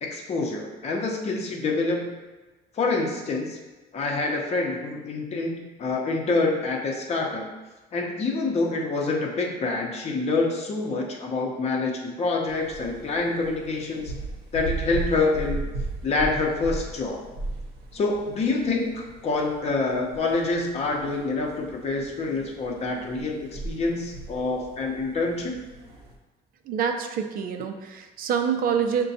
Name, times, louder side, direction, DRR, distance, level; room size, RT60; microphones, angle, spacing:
voice 1, 0.0-2.1 2.7-3.6 3.9-7.5 7.9-14.1 14.5-15.7 16.0-17.2 17.9-25.6, left 3 dB, 40° left, 0 dB, 0.7 m, -26 dB
sound 1, 12.5-26.2, right 3 dB, 75° right, 0.8 m, -37 dB
voice 2, 26.7-29.0, right 7 dB, 60° right, 5 dB, 0.5 m, -26 dB
6.6 x 2.2 x 2.7 m, 1.2 s
cardioid pair, 110°, 17 cm